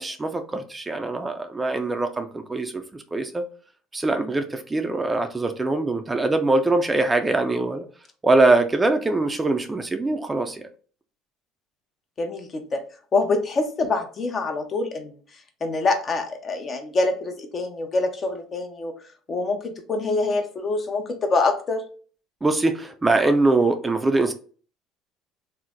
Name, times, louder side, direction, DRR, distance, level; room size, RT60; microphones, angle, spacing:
voice 1, 0.0-3.4 3.9-7.8 8.2-10.7 22.4-24.3, right 2 dB, 20° right, 7 dB, 0.4 m, -22 dB
voice 2, 12.2-12.8 13.1-15.1 15.6-18.9 19.3-21.8, left 3 dB, 40° left, 5 dB, 0.7 m, -25 dB
3.1 x 2.0 x 3.5 m, 0.42 s
supercardioid pair, 80°, 0 cm